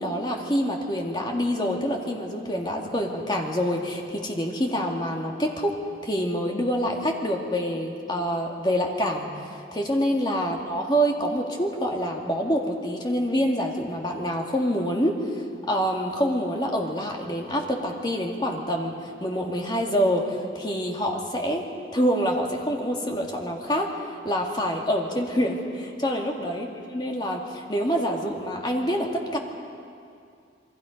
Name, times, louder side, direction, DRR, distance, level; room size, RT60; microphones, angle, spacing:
voice 1, 0.0-21.6 21.9-26.7 26.9-29.4, equal, 25° left, 1 dB, 2.1 m, -26 dB
28.5 x 22.5 x 5.2 m, 2.4 s
head